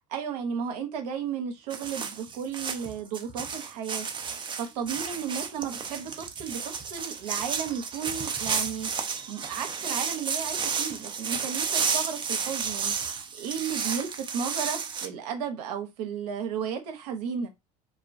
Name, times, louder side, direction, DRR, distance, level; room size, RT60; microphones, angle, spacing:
voice 1, 0.1-4.1 4.6-8.9 9.3-12.9 13.4-17.5, right 7 dB, 80° right, 0.6 m, -34 dB
sound 1, 1.7-15.1, right 6 dB, 25° right, 0.5 m, -32 dB
2.2 x 2.2 x 2.5 m
hypercardioid pair, 80°, 20 cm